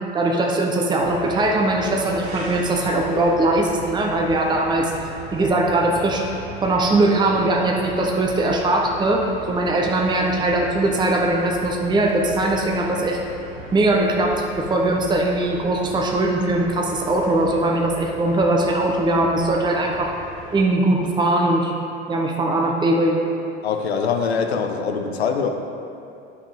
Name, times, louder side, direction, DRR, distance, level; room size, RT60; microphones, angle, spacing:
voice 1, 0.1-4.9 5.3-6.3 6.6-13.2 13.7-20.1 20.5-21.7 22.1-23.2, right 2 dB, 15° right, 1 dB, 0.8 m, -20 dB
sound 1, 1.0-20.6, equal, 85° right, 1.4 m, -38 dB
voice 2, 23.6-25.5, left 6 dB, 80° left, 5 dB, 0.7 m, -23 dB
9.3 x 5.5 x 3.5 m, 2.6 s
figure-of-eight pair, 70°, 31 cm